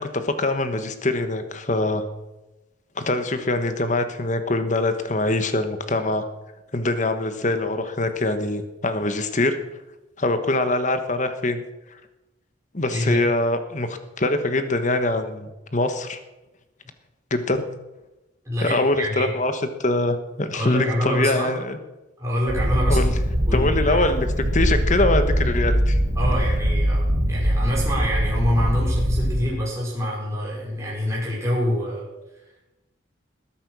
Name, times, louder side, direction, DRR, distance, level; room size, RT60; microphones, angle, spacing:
voice 1, 0.0-2.0 3.0-6.2 6.7-9.6 10.2-11.6 12.7-16.2 17.3-17.6 18.6-21.8 22.9-23.1 23.5-24.3 24.5-26.0, left 2 dB, 40° left, 9 dB, 1.3 m, -23 dB
voice 2, 12.9-13.3 18.4-19.3 20.5-21.5 22.2-23.1 23.5-24.0 26.1-32.0, equal, 15° right, -5 dB, 4.8 m, -26 dB
Purr, 22.5-29.5, equal, 60° right, 4.2 m, -22 dB
20.0 x 8.8 x 6.3 m, 1.0 s
head